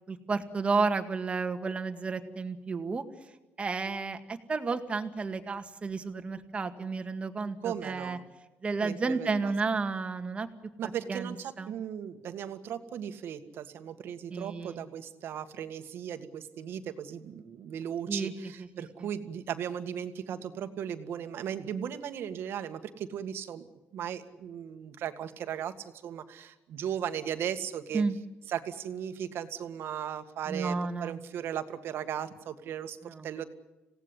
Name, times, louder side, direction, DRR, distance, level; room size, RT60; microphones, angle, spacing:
voice 1, 0.1-3.0 3.6-8.2 8.6-10.5 11.1-11.7 14.3-14.8 18.1-18.3 18.8-19.1 27.9-28.2 30.5-31.2 33.0-33.3, right 4 dB, 25° right, 8 dB, 2.0 m, -32 dB
voice 2, 7.6-8.2 8.8-9.5 10.8-23.6 23.9-28.0 28.5-33.0 33.2-33.4, right 9 dB, 65° right, 9 dB, 1.9 m, -37 dB
27.0 x 17.5 x 9.9 m, 1.1 s
cardioid pair, 125°, 4 cm